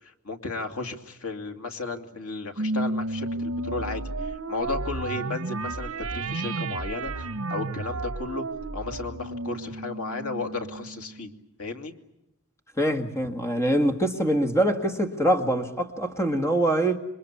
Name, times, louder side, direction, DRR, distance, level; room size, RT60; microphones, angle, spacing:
voice 1, 0.0-8.4 8.7-11.3 11.6-11.9, left 3 dB, 80° left, 5 dB, 2.5 m, -34 dB
sound 1, 2.6-11.3, right 2 dB, 70° right, 1.0 m, -32 dB
voice 2, 12.8-17.0, right 1 dB, 15° left, 6 dB, 1.7 m, -24 dB
27.0 x 23.5 x 8.4 m, 0.91 s
head